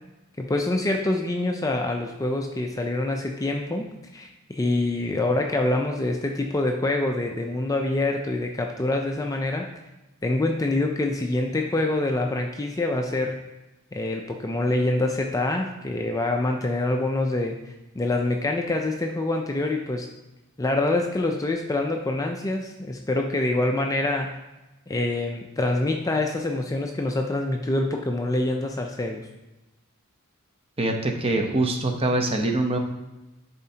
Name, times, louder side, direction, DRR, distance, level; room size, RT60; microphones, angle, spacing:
voice 1, 0.4-9.7 10.2-13.3 13.9-17.6 18.0-20.1 20.6-24.4 24.9-29.3, left 2 dB, 15° left, 3 dB, 0.4 m, -25 dB
voice 2, 30.8-32.8, right 2 dB, 25° right, 3 dB, 0.8 m, -24 dB
10.5 x 4.2 x 2.8 m, 1.0 s
head